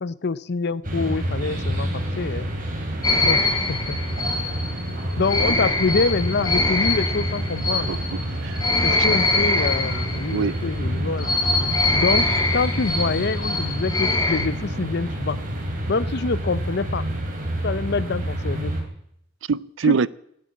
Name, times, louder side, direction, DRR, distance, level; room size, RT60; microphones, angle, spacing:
voice 1, 0.0-2.5 3.2-4.0 4.4-4.6 5.2-7.9 8.8-11.3 12.0-12.3 12.5-15.4 15.9-17.1 17.6-18.7 19.8-20.1, left 4 dB, 60° left, 0.7 m, -26 dB
sound 1, 0.8-18.8, right 1 dB, 45° right, 3.6 m, -28 dB
sound 2, 3.0-10.6 11.2-14.5, left 2 dB, 20° left, 1.5 m, -24 dB
voice 2, 7.9-8.6 8.9-9.1 10.3-10.6 19.5-20.1, right 5 dB, 75° right, 0.5 m, -24 dB
15.0 x 9.4 x 8.6 m
head